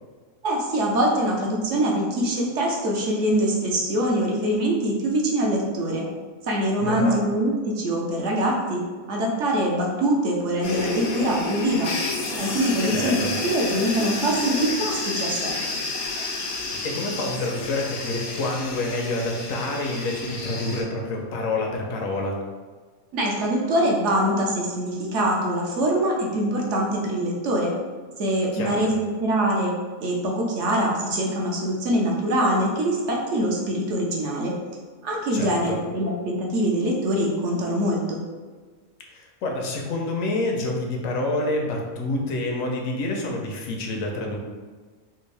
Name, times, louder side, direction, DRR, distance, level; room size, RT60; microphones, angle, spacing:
voice 1, 0.4-6.1 6.4-8.8 9.1-11.9 12.4-15.5 23.1-27.7 28.2-29.7 30.0-34.5 35.0-38.2, right 1 dB, 65° right, -2 dB, 0.9 m, -24 dB
voice 2, 6.8-7.2 12.8-13.3 16.6-22.4 28.5-28.9 35.3-35.8 39.1-44.4, left 2 dB, 75° left, 0 dB, 1.0 m, -28 dB
sound 1, 10.6-20.8, left 3 dB, 90° left, 1.2 m, -30 dB
3.5 x 2.5 x 3.2 m, 1.4 s
omnidirectional pair, 1.4 m